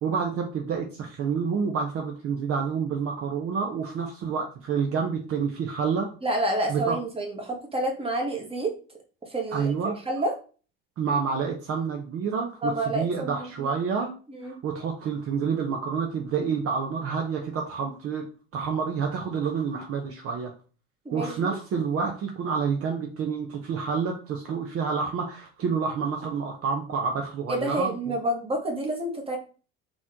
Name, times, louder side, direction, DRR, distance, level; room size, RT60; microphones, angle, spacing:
voice 1, 0.0-6.1 6.7-7.0 9.5-10.0 11.0-14.1 14.4-18.2 18.5-20.5 21.1-28.2, right 6 dB, 50° right, 2 dB, 0.9 m, -28 dB
voice 2, 6.2-8.7 9.3-9.7 10.1-10.3 12.6-13.7 14.3-14.6 21.0-21.5 27.5-29.4, right 1 dB, 20° right, 2 dB, 1.5 m, -29 dB
4.1 x 3.0 x 3.7 m, 0.37 s
supercardioid pair, 85°, 30 cm